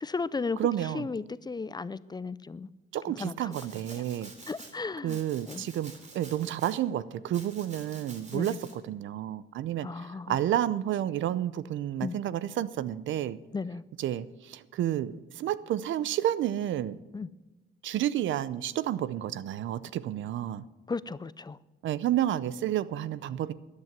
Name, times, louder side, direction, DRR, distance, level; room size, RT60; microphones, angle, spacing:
voice 1, 0.0-0.6 0.9-2.7 3.2-3.5 3.9-4.0 4.5-5.2 5.5-5.6 8.3-8.6 9.8-10.4 12.0-12.2 13.5-13.8 17.1-17.3 20.9-21.6, left 4 dB, 20° left, 18 dB, 0.4 m, -35 dB
voice 2, 0.6-1.1 2.9-4.3 5.0-13.4 14.0-17.0 17.8-20.6 21.8-23.5, right 11 dB, 75° right, 17 dB, 0.6 m, -30 dB
Domestic sounds home sounds, 3.5-4.7 5.1-6.8 7.3-8.7, right 3 dB, 35° right, 3.1 m, -49 dB
13.5 x 9.7 x 9.2 m, 1.1 s
cardioid pair, 90°, 20 cm